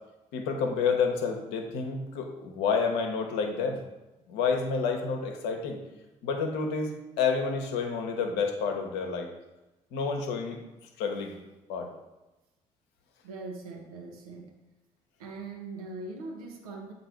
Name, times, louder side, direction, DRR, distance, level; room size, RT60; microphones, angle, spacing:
voice 1, 0.3-3.8 4.3-5.8 6.2-9.3 9.9-10.6 11.0-11.4 11.7-11.9, left 5 dB, 70° left, 4 dB, 0.9 m, -29 dB
voice 2, 13.2-14.6 15.2-16.9, right 3 dB, 85° right, 1 dB, 0.9 m, -41 dB
7.8 x 2.9 x 4.4 m, 1.1 s
hypercardioid pair, 45°, 18 cm